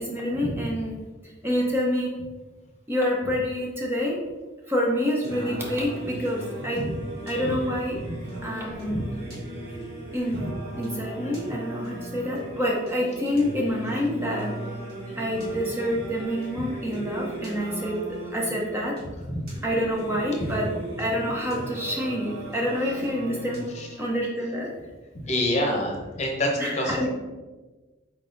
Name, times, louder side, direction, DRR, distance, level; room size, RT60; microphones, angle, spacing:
voice 1, 0.0-2.1 2.9-4.2 4.7-6.8 7.3-8.0 8.4-9.0 10.1-10.4 10.8-14.5 15.2-18.9 19.6-20.7 21.0-23.7 24.0-24.7 26.6-27.1, equal, 10° right, -3 dB, 0.5 m, -27 dB
Singing, 5.2-24.2, right 2 dB, 55° right, 1.2 m, -38 dB
voice 2, 7.3-7.6 7.9-8.0 8.9-9.0 10.3-10.4 19.3-19.4 20.4-20.5 23.7-23.9 25.3-27.1, left 1 dB, 35° left, 0 dB, 0.8 m, -27 dB
4.4 x 3.9 x 2.6 m, 1.2 s
head